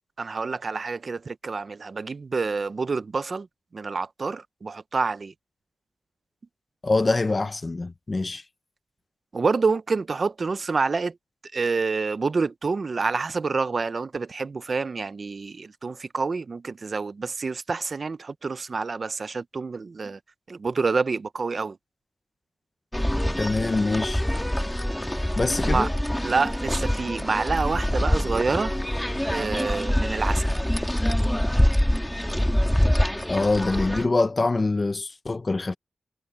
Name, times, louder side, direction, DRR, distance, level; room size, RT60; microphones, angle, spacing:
voice 1, 0.2-3.5 3.7-5.3 9.3-11.2 11.5-20.2 20.5-21.8 25.6-25.9 26.2-28.8 29.3-30.5, right 4 dB, 35° right, 0.5 m, -27 dB
voice 2, 6.8-8.4 23.4-24.2 25.4-25.9 33.3-35.8, left 3 dB, 25° left, 0.5 m, -24 dB
sound 1, 22.9-34.1, equal, 5° left, 1.9 m, -25 dB
wide cardioid pair, 160°, 0 cm